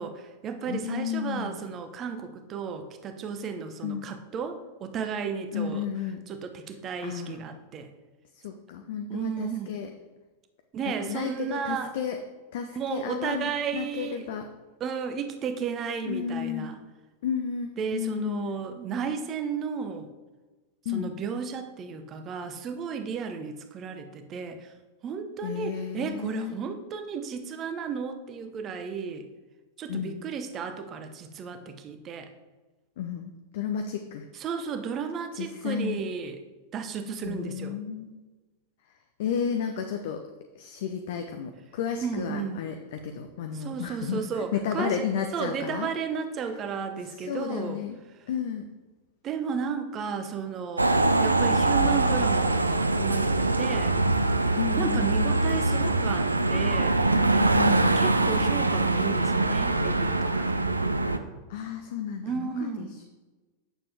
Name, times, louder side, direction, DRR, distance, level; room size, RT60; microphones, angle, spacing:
voice 1, 0.0-5.9 6.3-7.9 9.1-9.8 10.7-11.9 12.7-14.3 14.8-16.8 17.8-20.1 20.9-24.7 25.0-29.3 29.8-32.3 34.3-36.4 36.7-37.8 42.0-42.6 43.5-45.0 45.3-47.8 49.2-54.2 54.8-57.1 58.0-60.5 62.2-62.9, right 6 dB, 30° right, 8 dB, 0.8 m, -33 dB
voice 2, 0.6-1.6 3.8-4.1 5.5-6.2 7.0-7.4 8.3-9.9 11.0-12.2 12.5-14.5 16.1-16.7 17.2-18.6 20.9-21.1 25.4-26.5 29.9-30.2 33.0-34.3 35.3-36.0 37.2-38.1 39.2-40.2 40.6-45.9 47.3-48.0 48.3-48.7 54.6-55.3 57.5-57.9 61.5-63.0, left 7 dB, 55° left, 5 dB, 0.6 m, -32 dB
sound 1, 50.8-61.2, right 2 dB, 80° right, 0.4 m, -23 dB
9.0 x 6.8 x 3.4 m, 1.2 s
figure-of-eight pair, 90°, 0 cm